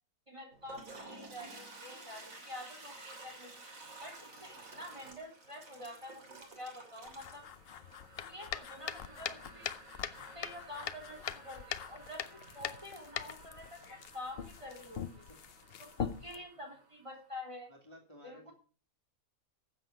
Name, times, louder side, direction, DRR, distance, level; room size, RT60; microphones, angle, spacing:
voice 1, 0.3-3.6 4.0-7.5 8.2-9.8 10.3-15.3 15.8-17.7 18.2-18.5, left 1 dB, 20° right, 1 dB, 3.6 m, -48 dB
Toilet flush, 0.5-17.3, right 2 dB, 55° right, 3.4 m, -53 dB
sound 1, 7.0-16.4, left 8 dB, 55° left, 0.7 m, -42 dB
voice 2, 17.7-18.5, equal, 15° left, 1 dB, 2.3 m, -55 dB
13.0 x 8.1 x 5.1 m, 0.40 s
omnidirectional pair, 1.7 m